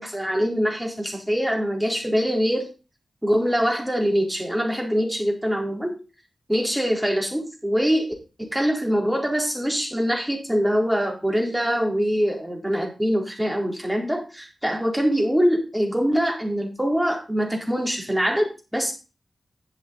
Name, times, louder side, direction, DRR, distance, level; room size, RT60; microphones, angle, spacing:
voice 1, 0.0-2.7 3.2-5.9 6.5-8.1 8.4-18.9, equal, 5° right, 1 dB, 4.3 m, -23 dB
10.5 x 7.5 x 4.1 m, 0.32 s
cardioid pair, 45°, 0 cm